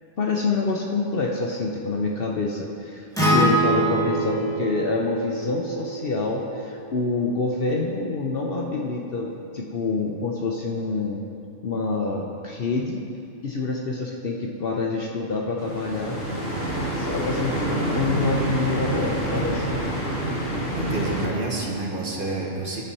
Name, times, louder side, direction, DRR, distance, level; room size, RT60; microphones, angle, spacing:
voice 1, 0.2-11.2 11.6-13.0 13.4-16.2 17.0-17.5 17.9-19.7, left 3 dB, 55° left, -1 dB, 0.8 m, -27 dB
Acoustic guitar, 3.2-7.4, right 2 dB, 5° left, 1.2 m, -25 dB
sound 1, 15.6-21.3, right 1 dB, 70° right, 2.7 m, -27 dB
voice 2, 20.7-22.8, right 2 dB, 40° right, -2 dB, 1.2 m, -29 dB
13.5 x 5.3 x 4.2 m, 2.6 s
omnidirectional pair, 1.4 m